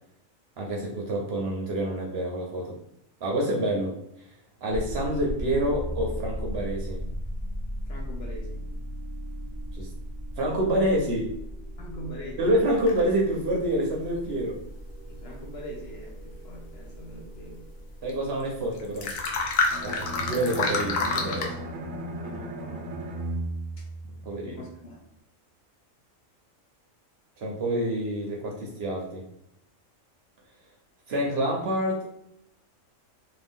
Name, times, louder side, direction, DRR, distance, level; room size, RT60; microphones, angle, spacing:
voice 1, 0.6-2.8 3.2-4.0 4.6-7.0 9.7-9.9 10.4-11.3 12.4-14.6 18.0-19.1 19.8-20.0 20.3-21.6 24.2-24.6 27.4-29.2 31.1-32.1, right 1 dB, 60° right, -1 dB, 0.8 m, -27 dB
sound 1, 4.7-21.6, equal, ahead, 1.2 m, -38 dB
voice 2, 7.9-8.7 11.8-12.4 15.1-17.6 19.8-20.1 22.2-22.9 24.4-25.0, equal, 55° left, -2 dB, 0.8 m, -42 dB
sound 2, 12.9-13.0 13.8-13.9 18.1-18.2 18.4-18.5 18.8-21.5, left 4 dB, 85° left, 1.0 m, -28 dB
Bowed string instrument, 19.7-24.7, right 2 dB, 90° right, 1.0 m, -36 dB
2.6 x 2.5 x 3.5 m, 0.78 s
omnidirectional pair, 1.4 m